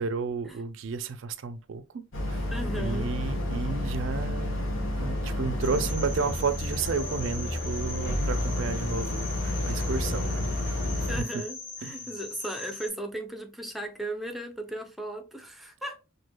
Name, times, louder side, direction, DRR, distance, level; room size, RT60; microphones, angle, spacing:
voice 1, 0.0-2.4 2.7-11.4 11.8-12.0, right 5 dB, 80° right, 0.4 m, -33 dB
Boat Water vehicle, 2.1-11.2, left 1 dB, 90° left, 1.0 m, -30 dB
voice 2, 2.5-3.1 5.8-5.9 11.1-16.0, right 1 dB, ahead, 0.5 m, -36 dB
Keyboard (musical), 5.0-12.5, left 1 dB, 20° left, 1.1 m, -50 dB
sound 1, 5.6-12.9, left 3 dB, 60° left, 1.8 m, -41 dB
4.4 x 2.6 x 2.2 m
head